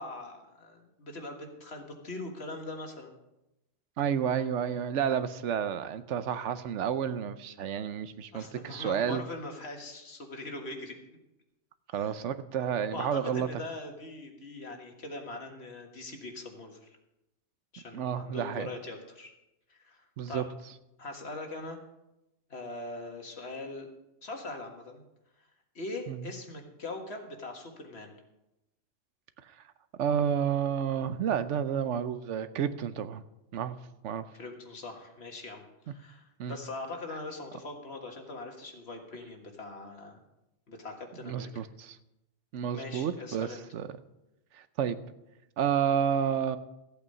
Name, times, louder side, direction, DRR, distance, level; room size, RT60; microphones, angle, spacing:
voice 1, 0.0-3.2 8.3-11.0 11.9-12.1 12.9-17.0 17.7-19.3 19.7-20.5 21.0-21.8 22.5-23.9 24.2-25.0 25.8-28.1 34.3-40.2 40.7-41.6 42.7-43.6, left 2 dB, 65° left, 3 dB, 1.9 m, -41 dB
voice 2, 4.0-9.2 11.9-13.5 17.9-18.7 20.2-20.4 26.1-26.3 30.0-33.2 33.5-33.8 34.0-34.3 36.4-36.6 41.2-42.0 42.5-43.9 44.5-45.0 45.6-46.6, right 8 dB, 85° right, 12 dB, 1.0 m, -30 dB
14.0 x 8.3 x 5.4 m, 0.92 s
omnidirectional pair, 1.2 m